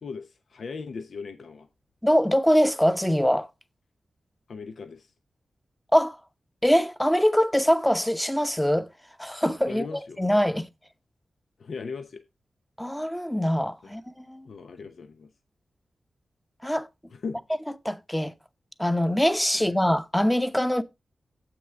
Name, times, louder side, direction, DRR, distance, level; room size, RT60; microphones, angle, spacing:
voice 1, 0.0-1.7 4.5-5.1 9.7-10.2 11.6-12.2 13.8-14.0 14.4-15.3 17.1-17.4 19.5-19.7, left 4 dB, 75° left, 0.8 m, -38 dB
voice 2, 2.0-3.5 5.9-6.2 6.6-8.9 9.2-10.7 12.8-14.5 16.6-16.9 17.8-18.3 18.8-20.8, equal, 5° left, 0.9 m, -23 dB
7.7 x 6.0 x 4.7 m
cardioid pair, 65°, 0 cm